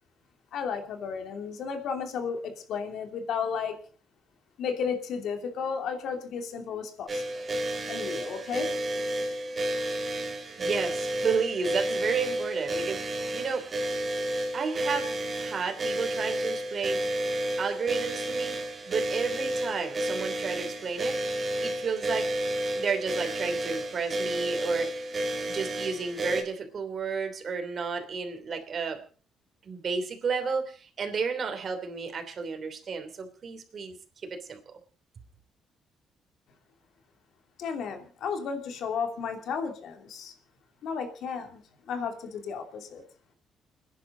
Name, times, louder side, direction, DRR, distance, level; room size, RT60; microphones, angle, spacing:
voice 1, 0.5-3.8 4.6-7.4 7.9-8.7 37.6-40.3 40.8-41.6 41.9-43.0, left 6 dB, 75° left, 5 dB, 2.8 m, -33 dB
sound 1, 7.1-26.4, right 1 dB, 35° right, 3.0 m, -31 dB
voice 2, 10.6-13.7 14.5-17.0 17.6-21.2 21.6-22.3 22.7-25.0 25.5-29.0 29.6-33.9 34.2-34.6, right 5 dB, 50° right, 6 dB, 3.1 m, -32 dB
29.5 x 10.5 x 4.0 m, 0.38 s
cardioid pair, 90°, 0 cm